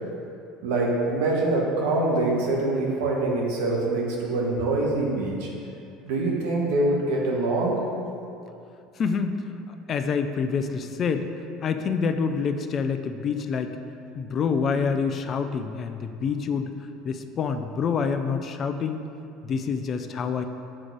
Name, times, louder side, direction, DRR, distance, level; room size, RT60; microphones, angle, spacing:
voice 1, 0.6-5.5 6.0-7.8, right 2 dB, 70° right, -2 dB, 1.2 m, -24 dB
voice 2, 9.0-9.4 9.9-11.3 11.6-13.7 14.2-16.7 17.0-19.0 19.4-20.4, left 5 dB, 40° left, 8 dB, 0.5 m, -27 dB
7.4 x 3.9 x 4.7 m, 2.6 s
hypercardioid pair, 75°, 0 cm